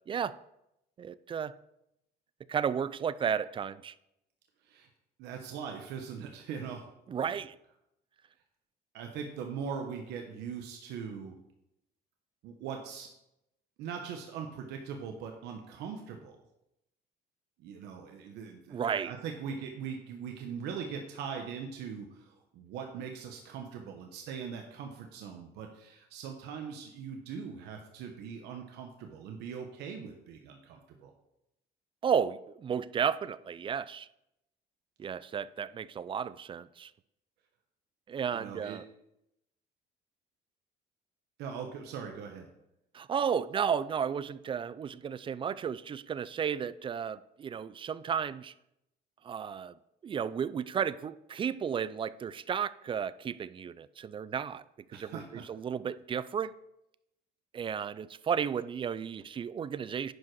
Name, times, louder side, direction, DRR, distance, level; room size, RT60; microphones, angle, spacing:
voice 1, 1.0-1.6 2.5-3.9 7.1-7.6 18.7-19.1 32.0-34.1 35.0-36.9 38.1-38.8 42.9-48.5 49.2-49.7 50.0-54.6 54.9-56.5 57.5-60.1, right 7 dB, 30° right, 17 dB, 0.3 m, -33 dB
voice 2, 5.2-6.9 7.2-7.3 8.9-11.4 12.4-13.1 13.8-16.4 17.6-31.1 38.3-38.8 41.4-42.5 54.9-55.5, right 6 dB, 85° right, 3 dB, 0.9 m, -41 dB
10.5 x 4.9 x 4.7 m, 0.84 s
cardioid pair, 110°, 17 cm